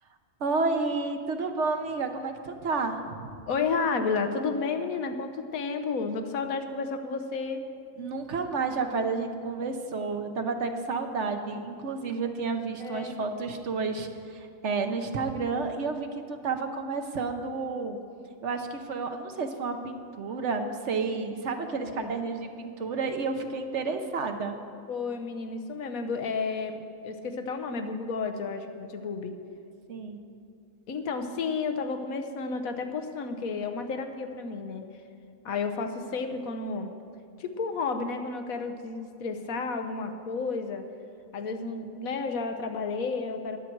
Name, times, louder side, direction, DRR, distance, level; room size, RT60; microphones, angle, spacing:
voice 1, 0.4-3.4 8.0-18.0 18.4-24.6 29.9-30.2, right 4 dB, 60° right, 6 dB, 1.1 m, -31 dB
voice 2, 3.5-7.6 12.8-13.2 21.8-22.1 24.9-29.4 30.9-34.9 35.4-36.9 37.4-40.9 41.3-43.6, left 4 dB, 90° left, 7 dB, 1.3 m, -32 dB
20.5 x 7.6 x 4.6 m, 2.6 s
omnidirectional pair, 1.4 m